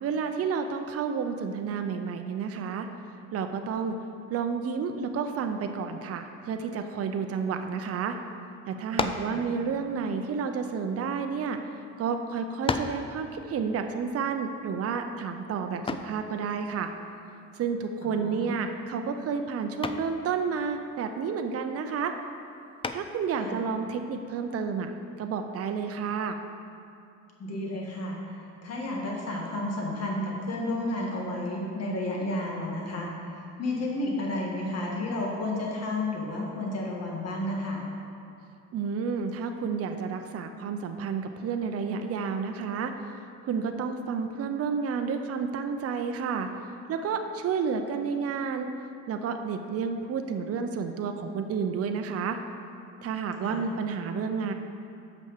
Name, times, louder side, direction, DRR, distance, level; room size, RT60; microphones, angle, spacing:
voice 1, 0.0-2.9 3.3-4.0 4.3-8.2 8.7-11.6 12.0-16.9 17.6-22.1 22.9-24.9 25.2-26.4 38.7-42.9 43.4-46.5 46.9-48.7 49.1-52.4 53.0-54.5, right 6 dB, 50° right, 6 dB, 0.6 m, -30 dB
sound 1, 8.9-9.4 10.3-11.5 12.1-12.2 12.7-13.1 15.9-16.2 18.1-18.5 18.9-19.2 19.8-20.2 22.8-23.3, left 4 dB, 20° left, 0.4 m, -32 dB
voice 2, 18.0-18.5 23.4-23.6 27.4-37.8 53.4-53.6, left 1 dB, 55° left, -1 dB, 1.7 m, -32 dB
6.2 x 5.4 x 6.6 m, 2.5 s
cardioid pair, 90°, 30 cm